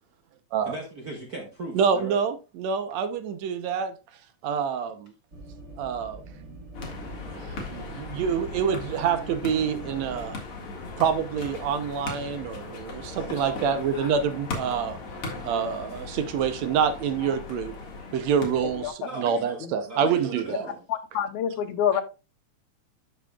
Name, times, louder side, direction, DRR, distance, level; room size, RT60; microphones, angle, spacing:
voice 1, 0.6-2.2 13.1-14.0 19.0-20.8, right 2 dB, 55° right, 1.0 m, -39 dB
voice 2, 1.7-3.9 4.4-5.1 5.8-6.5 6.8-6.9 7.3-10.4 11.0-15.0 15.4-17.7 18.1-20.7, right 7 dB, 75° right, 2.0 m, -27 dB
sound 1, 5.3-10.3, right 2 dB, 30° right, 1.5 m, -43 dB
sound 2, 6.7-18.9, left 3 dB, 50° left, 2.6 m, -38 dB
voice 3, 20.9-22.0, left 9 dB, 85° left, 2.3 m, -27 dB
12.0 x 6.1 x 2.3 m
omnidirectional pair, 3.3 m